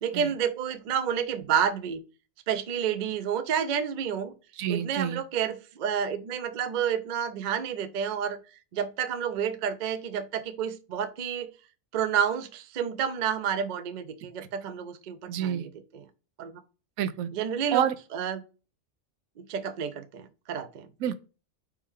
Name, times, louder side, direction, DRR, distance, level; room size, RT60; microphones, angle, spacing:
voice 1, 0.0-2.0 2.5-4.3 4.7-8.4 8.7-11.5 11.9-15.7 15.9-16.1 16.4-16.5 17.3-17.9 18.1-18.4 19.4-20.9, right 8 dB, 60° right, 0.5 m, -30 dB
voice 2, 4.6-5.2 15.3-15.7 17.0-17.3 17.7-17.9 21.0-21.1, right 9 dB, 90° right, 1.0 m, -28 dB
4.6 x 2.9 x 3.5 m
omnidirectional pair, 1.4 m